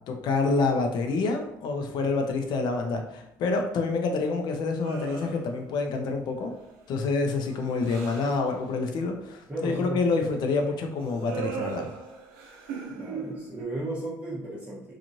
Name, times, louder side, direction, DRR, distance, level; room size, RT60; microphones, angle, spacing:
voice 1, 0.1-6.5 6.9-11.9, left 3 dB, 65° left, 4 dB, 0.5 m, -27 dB
sound 1, 4.8-5.7 6.3-6.8 7.2-8.5 11.0-13.6, right 5 dB, 90° right, 0.4 m, -38 dB
voice 2, 9.5-10.0 12.9-14.9, right 1 dB, 15° right, -9 dB, 0.9 m, -34 dB
2.9 x 2.4 x 2.6 m, 0.83 s
supercardioid pair, 85°, 8 cm